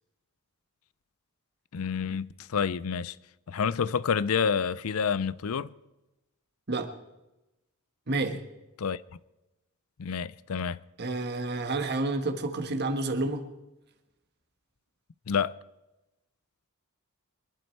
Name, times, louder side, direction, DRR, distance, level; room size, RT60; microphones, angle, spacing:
voice 1, 1.7-3.2 3.5-5.7 8.8-9.0 10.0-10.8 15.3-15.5, left 6 dB, 75° left, 0.5 m, -28 dB
voice 2, 8.1-8.4 11.0-13.5, right 2 dB, 50° right, 1.5 m, -29 dB
24.5 x 11.5 x 4.5 m
head